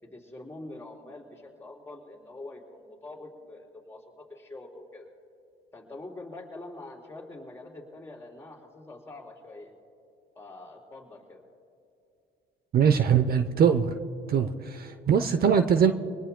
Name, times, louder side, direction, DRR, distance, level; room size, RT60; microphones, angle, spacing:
voice 1, 0.0-5.1 5.7-9.7 10.3-11.4, left 2 dB, 10° left, -1 dB, 4.2 m, -45 dB
voice 2, 12.7-13.9 14.3-15.9, right 7 dB, 50° right, 9 dB, 0.8 m, -22 dB
25.5 x 20.0 x 2.2 m, 2.7 s
cardioid pair, 85°, 20 cm